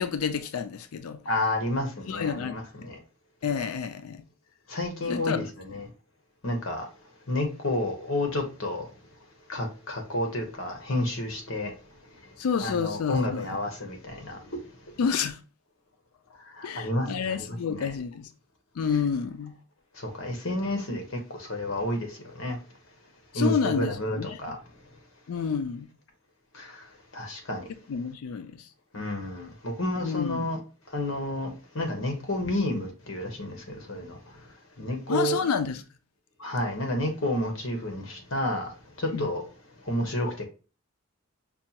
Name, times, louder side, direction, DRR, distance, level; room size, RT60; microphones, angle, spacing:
voice 1, 0.0-1.2 2.1-2.6 3.4-4.2 5.1-5.5 12.4-13.5 15.0-15.4 16.6-18.3 18.8-19.5 23.3-24.3 25.3-25.9 27.9-28.7 30.0-30.5 35.1-35.8 39.1-39.3, left 6 dB, 90° left, 0.4 m, -29 dB
voice 2, 1.2-3.0 4.7-5.9 6.4-6.9 7.3-8.9 9.5-11.7 12.6-14.6 16.6-17.9 20.0-22.6 23.3-24.6 26.5-26.8 27.1-27.7 28.9-30.6 30.9-34.2 34.8-35.4 36.4-38.7 39.0-39.4 39.8-40.5, left 1 dB, 65° left, 1.0 m, -30 dB
5.3 x 2.3 x 2.8 m
head